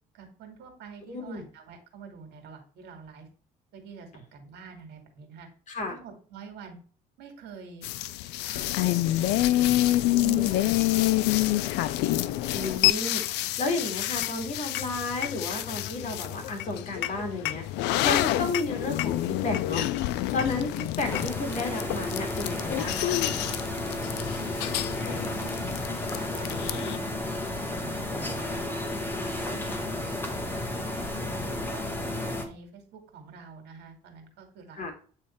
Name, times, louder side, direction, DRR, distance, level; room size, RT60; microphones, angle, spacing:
voice 1, 0.1-3.3 3.7-5.5 5.9-6.8 7.2-7.9 8.4-11.4 24.8-25.8 26.2-27.2 27.5-32.0 32.4-34.9, right 5 dB, 80° right, 4 dB, 2.0 m, -47 dB
voice 2, 1.1-1.4 5.7-6.0 10.2-10.6 12.5-13.2 13.6-17.6 18.0-19.9 20.3-23.2 34.7-34.9, left 2 dB, 45° left, 3 dB, 2.1 m, -32 dB
sound 1, 7.8-27.0, left 15 dB, 90° left, 0.4 m, -28 dB
sound 2, 21.0-32.4, left 1 dB, 10° left, 1.4 m, -32 dB
8.9 x 3.3 x 4.3 m, 0.42 s
cardioid pair, 110°, 17 cm